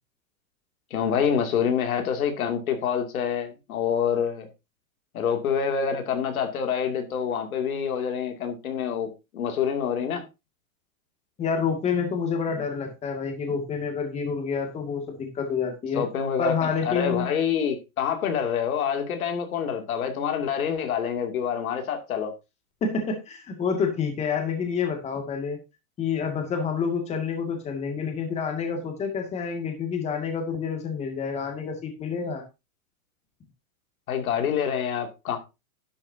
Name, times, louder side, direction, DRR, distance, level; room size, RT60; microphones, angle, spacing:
voice 1, 0.9-4.5 5.1-10.2 15.9-22.3 34.1-35.4, left 7 dB, 90° left, 2.7 m, -27 dB
voice 2, 11.4-16.0 16.4-17.3 22.8-25.6 26.0-32.4, left 6 dB, 15° left, 2.2 m, -28 dB
11.5 x 9.7 x 2.8 m
supercardioid pair, 160°, 41 cm